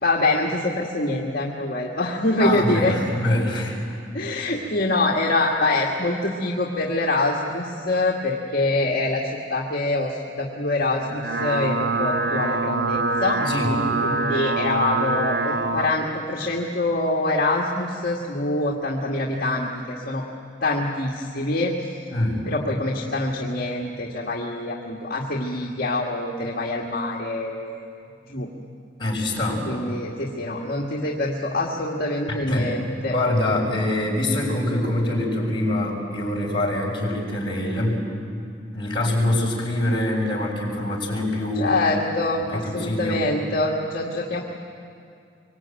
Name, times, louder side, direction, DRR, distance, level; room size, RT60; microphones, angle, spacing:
voice 1, 0.0-3.0 4.1-9.2 9.5-13.4 14.0-20.2 20.6-21.7 22.5-27.9 28.3-28.5 29.7-33.1 41.6-44.4, left 2 dB, 55° left, -2 dB, 2.0 m, -25 dB
voice 2, 2.4-3.8 13.4-13.8 22.1-22.5 29.0-29.7 32.5-32.7 33.1-38.0 38.7-41.8 42.5-43.2, left 1 dB, 25° left, -3 dB, 6.8 m, -24 dB
sound 1, 11.0-15.9, right 3 dB, 65° right, 1.2 m, -25 dB
25.0 x 24.0 x 9.2 m, 2.4 s
head